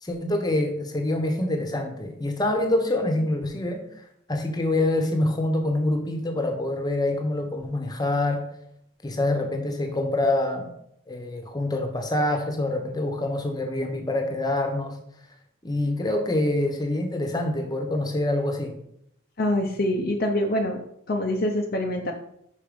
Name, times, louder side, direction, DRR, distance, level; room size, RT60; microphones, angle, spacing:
voice 1, 0.0-8.5 9.0-10.7 11.1-15.0 15.6-18.7, left 1 dB, 20° left, 4 dB, 1.0 m, -26 dB
voice 2, 19.4-20.8 21.1-22.1, left 1 dB, 50° left, 1 dB, 0.6 m, -25 dB
5.6 x 5.2 x 5.1 m, 0.75 s
head